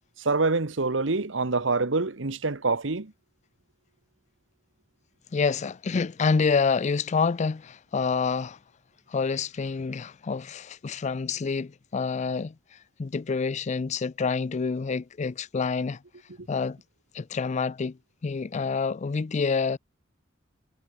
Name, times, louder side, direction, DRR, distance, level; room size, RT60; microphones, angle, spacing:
voice 1, 0.2-3.1, right 3 dB, 75° right, 1.3 m, -26 dB
voice 2, 5.3-8.6 9.1-12.5 13.0-16.0 16.5-16.8 17.1-17.9 18.2-19.8, left 5 dB, 40° left, 0.4 m, -27 dB
head